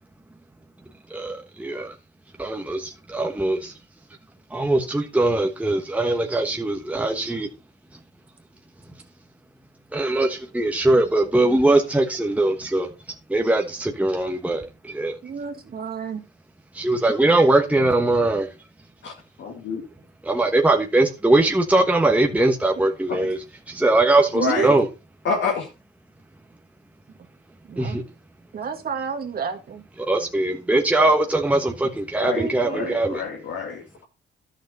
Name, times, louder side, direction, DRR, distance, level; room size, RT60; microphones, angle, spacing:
voice 1, 1.1-2.0 2.4-3.8 4.5-7.5 7.9-8.0 8.9-9.0 9.9-15.2 16.7-18.7 20.2-24.9 27.8-28.0 30.0-33.2, right 2 dB, 5° right, 1.2 m, -21 dB
voice 2, 15.2-16.2 24.3-24.8 27.6-28.0 28.5-29.8 32.4-32.9, right 6 dB, 50° right, 1.9 m, -30 dB
voice 3, 19.0-19.8 23.1-23.2 24.4-24.7 25.2-25.7 32.2-34.0, left 5 dB, 70° left, 2.3 m, -28 dB
11.0 x 6.7 x 4.2 m
cardioid pair, 90°, 20 cm